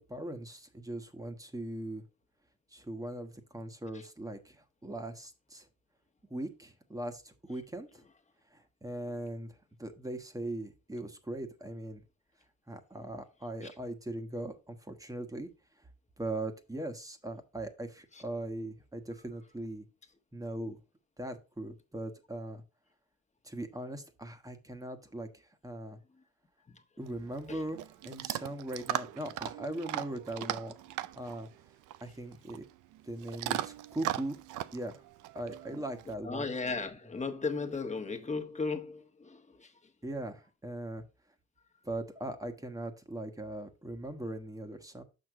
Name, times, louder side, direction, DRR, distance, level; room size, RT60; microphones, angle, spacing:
voice 1, 0.0-2.0 2.7-5.7 6.3-8.0 8.5-12.0 12.7-15.5 16.2-19.9 20.3-20.8 21.2-22.6 23.4-26.0 27.0-30.7 31.1-31.5 32.0-32.6 33.0-34.4 34.7-35.0 35.3-36.5 40.0-41.0 41.8-45.0, right 1 dB, 10° right, 1.2 m, -40 dB
Chewing mastication / Dog, 27.0-36.1, right 13 dB, 85° right, 0.5 m, -39 dB
voice 2, 36.2-39.7, left 4 dB, 25° left, 1.3 m, -35 dB
6.6 x 5.7 x 3.6 m
cardioid pair, 90°, 30 cm